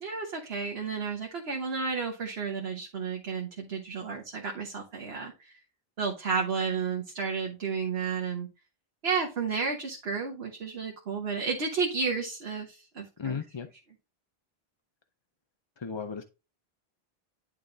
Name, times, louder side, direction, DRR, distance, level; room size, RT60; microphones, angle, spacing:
voice 1, 0.0-5.3 6.0-8.5 9.0-13.4, right 5 dB, 75° right, 1 dB, 1.4 m, -32 dB
voice 2, 13.2-13.7 15.8-16.2, left 6 dB, 35° left, 7 dB, 0.5 m, -35 dB
10.5 x 3.6 x 3.9 m, 0.29 s
omnidirectional pair, 1.0 m